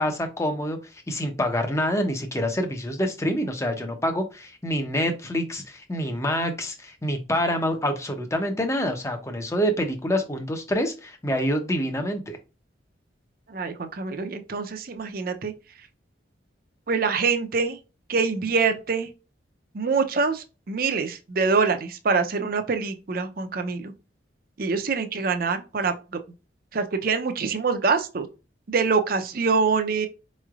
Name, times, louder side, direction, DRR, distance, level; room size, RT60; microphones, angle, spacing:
voice 1, 0.0-12.4, equal, 15° left, 0.6 m, -26 dB
voice 2, 13.5-15.5 16.9-17.8 18.1-19.1 19.7-23.9 24.6-25.9 26.7-28.3 28.7-30.1, right 4 dB, 50° right, 0.5 m, -25 dB
4.7 x 3.1 x 2.4 m
head